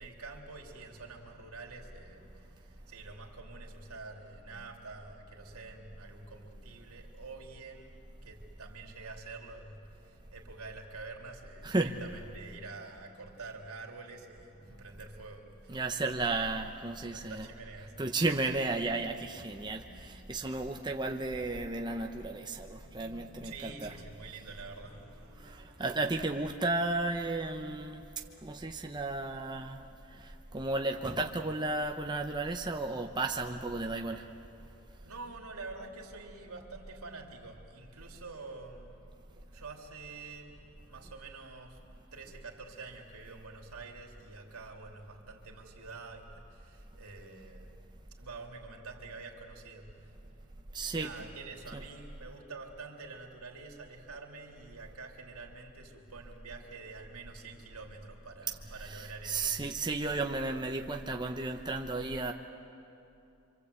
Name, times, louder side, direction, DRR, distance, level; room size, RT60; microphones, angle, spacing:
voice 1, 0.0-7.9 8.2-16.2 17.1-18.0 19.7-20.9 22.6-26.3 35.0-41.8 42.1-47.8 48.2-50.4 50.9-59.8, right 3 dB, 80° right, 1 dB, 3.2 m, -48 dB
voice 2, 11.6-12.0 15.7-17.5 18.0-23.9 25.4-28.0 28.4-29.8 30.1-34.3 50.7-51.1 51.7-51.8 58.8-62.3, right 2 dB, 20° right, 3 dB, 0.9 m, -33 dB
27.5 x 25.0 x 8.3 m, 2.8 s
head